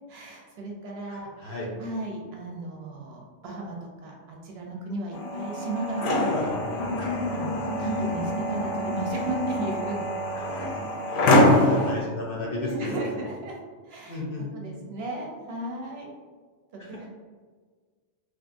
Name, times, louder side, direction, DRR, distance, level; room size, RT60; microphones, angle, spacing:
voice 1, 0.1-6.8 7.3-10.0 11.3-11.9 12.5-13.6 13.8-14.2 14.5-16.1 16.7-17.1, right 2 dB, 65° right, -1 dB, 0.7 m, -35 dB
voice 2, 1.1-1.7 7.8-8.1 10.3-10.5 11.1-13.3 14.1-14.5 16.8-17.0, left 2 dB, 60° left, -3 dB, 0.7 m, -35 dB
sound 1, 5.1-11.9, left 1 dB, 85° left, 0.9 m, -24 dB
2.8 x 2.4 x 2.5 m, 1.5 s
omnidirectional pair, 1.2 m